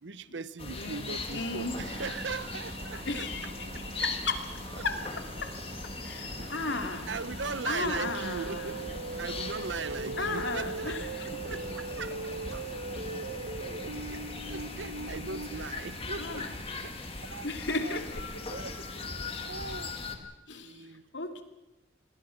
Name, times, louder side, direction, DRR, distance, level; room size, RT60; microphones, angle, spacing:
voice 1, 0.0-3.2 3.7-3.8 4.7-4.8 6.4-6.5 7.1-11.0 11.4-12.2 12.5-12.7 14.1-16.5 16.8-17.5 17.8-18.0 18.5-18.7 19.4-20.0 20.6-21.0, right 4 dB, 85° right, 15 dB, 0.9 m, -39 dB
sound 1, 0.6-20.2, left 3 dB, 35° left, 2.3 m, -40 dB
voice 2, 0.8-1.8 2.9-5.5 6.0-7.1 7.7-8.9 10.2-11.6 16.2-16.9 17.4-18.4 20.5-20.9 21.1-21.4, left 3 dB, 80° left, 5 dB, 2.8 m, -35 dB
sound 2, 1.5-20.3, right 2 dB, 35° right, 0.9 m, -47 dB
sound 3, 8.0-15.5, right 3 dB, 65° right, 1.1 m, -39 dB
27.0 x 21.5 x 6.0 m, 1.0 s
head